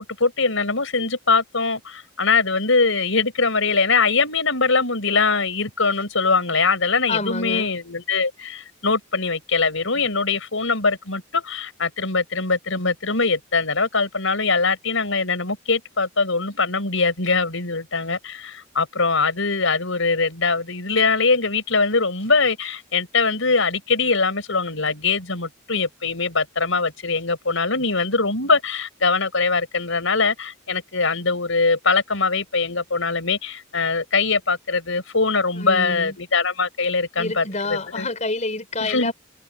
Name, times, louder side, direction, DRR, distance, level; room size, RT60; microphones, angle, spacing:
voice 1, 0.0-38.1 38.8-39.1, left 4 dB, 70° left, 5.6 m, -22 dB
voice 2, 7.1-7.7 35.5-36.2 37.2-39.1, left 3 dB, 35° left, 4.9 m, -28 dB
head